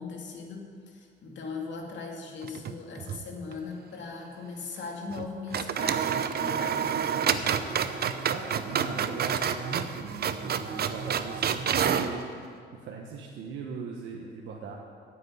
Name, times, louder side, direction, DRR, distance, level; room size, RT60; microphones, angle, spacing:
voice 1, 0.0-7.1, left 4 dB, 70° left, 1 dB, 2.3 m, -39 dB
sound 1, 2.4-3.2 3.5-3.6 5.1-5.3 5.5-12.1, right 7 dB, 55° right, 0.7 m, -29 dB
voice 2, 8.0-12.2 12.8-14.7, right 5 dB, 85° right, -1 dB, 1.2 m, -38 dB
9.6 x 8.3 x 9.6 m, 2.2 s
cardioid pair, 100°, 20 cm